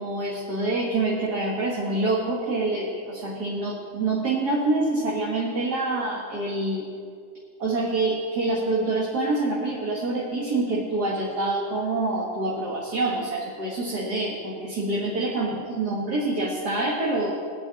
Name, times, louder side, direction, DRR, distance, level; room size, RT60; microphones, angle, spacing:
voice 1, 0.0-6.9 7.6-17.3, right 2 dB, 65° right, -4 dB, 2.1 m, -26 dB
22.0 x 8.8 x 3.7 m, 2.2 s
omnidirectional pair, 1.8 m